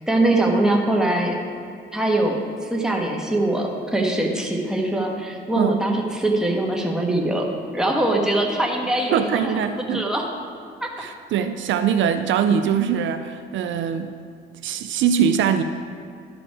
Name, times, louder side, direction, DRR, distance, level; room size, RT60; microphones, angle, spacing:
voice 1, 0.1-1.4 1.9-7.5 7.7-10.3 10.8-11.1, right 1 dB, 5° right, 0 dB, 1.3 m, -22 dB
voice 2, 9.1-10.0 11.0-14.1 14.6-15.6, right 8 dB, 70° right, 8 dB, 0.5 m, -22 dB
12.0 x 5.1 x 4.8 m, 2.3 s
cardioid pair, 90°, 20 cm